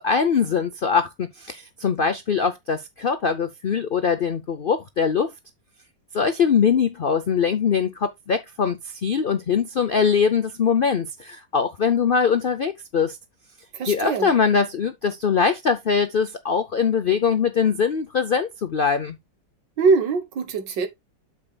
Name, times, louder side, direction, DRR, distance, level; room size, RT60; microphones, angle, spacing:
voice 1, 0.0-5.3 6.1-13.2 13.8-19.2, left 6 dB, 90° left, 0.4 m, -22 dB
voice 2, 13.7-14.3 19.8-20.9, right 4 dB, 75° right, 1.9 m, -22 dB
8.8 x 7.4 x 2.3 m
omnidirectional pair, 2.0 m